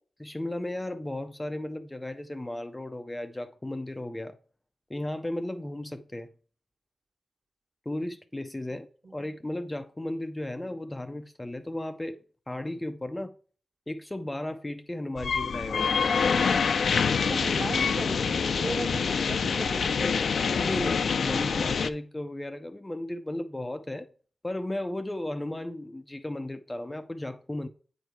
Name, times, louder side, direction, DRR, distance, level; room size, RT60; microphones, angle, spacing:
voice 1, 0.2-4.4 4.9-6.3 7.9-8.9 9.1-12.2 12.5-13.3 13.9-16.0 20.6-24.1 24.4-27.7, left 1 dB, 15° left, 0.5 m, -35 dB
sound 1, 15.2-21.9, left 6 dB, 70° left, 0.5 m, -26 dB
voice 2, 17.2-20.2, right 3 dB, 45° right, 1.4 m, -37 dB
8.8 x 4.5 x 4.6 m
wide cardioid pair, 140°, 0 cm